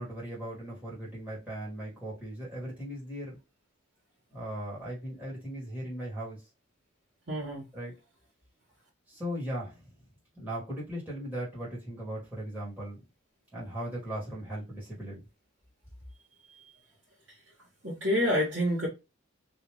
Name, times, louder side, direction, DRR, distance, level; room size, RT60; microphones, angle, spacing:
voice 1, 0.0-3.4 4.3-6.4 7.7-7.9 9.1-9.9 10.4-13.0 13.5-15.2, right 1 dB, 10° right, 1.9 m, -38 dB
voice 2, 7.3-7.6 17.8-18.9, left 1 dB, 60° right, 1.6 m, -27 dB
3.4 x 2.9 x 3.0 m
head